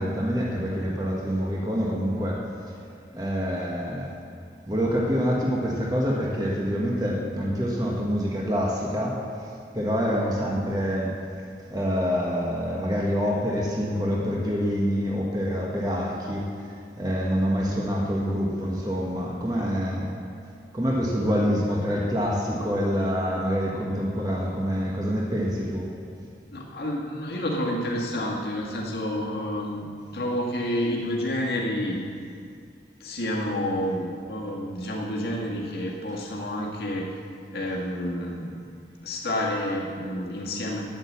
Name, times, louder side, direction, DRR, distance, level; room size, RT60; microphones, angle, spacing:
voice 1, 0.0-2.5 3.1-4.1 4.7-11.2 11.7-20.1 20.7-25.9, equal, 20° right, -3 dB, 1.4 m, -26 dB
voice 2, 26.5-29.8 30.1-32.0 33.0-37.2 37.5-38.6 39.0-40.8, left 1 dB, 65° left, -3 dB, 1.9 m, -29 dB
10.5 x 9.0 x 7.4 m, 2.3 s
head